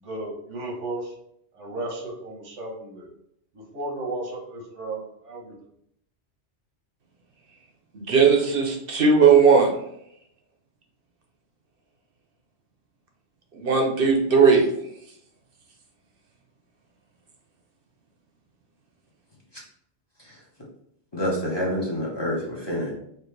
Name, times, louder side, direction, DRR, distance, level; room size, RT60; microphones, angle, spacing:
voice 1, 0.0-1.1 1.5-3.1 3.5-5.5, right 2 dB, 90° right, 0 dB, 1.4 m, -34 dB
voice 2, 7.9-9.7 13.5-14.7, right 5 dB, 60° right, 2 dB, 0.8 m, -17 dB
voice 3, 21.1-22.9, equal, 25° left, -4 dB, 0.9 m, -27 dB
4.4 x 2.5 x 3.2 m, 0.72 s
omnidirectional pair, 1.2 m